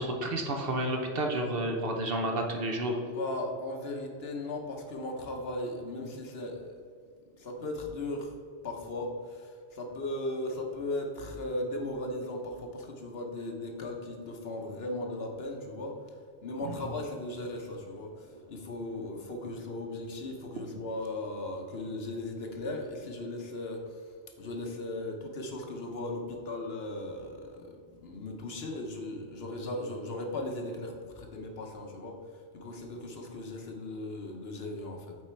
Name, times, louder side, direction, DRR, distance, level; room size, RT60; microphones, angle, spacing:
voice 1, 0.0-3.0, right 1 dB, 55° right, 3 dB, 1.0 m, -30 dB
voice 2, 3.1-6.8 7.3-8.3 8.6-35.2, left 1 dB, 60° left, 2 dB, 1.2 m, -37 dB
8.1 x 4.2 x 4.4 m, 2.2 s
omnidirectional pair, 1.2 m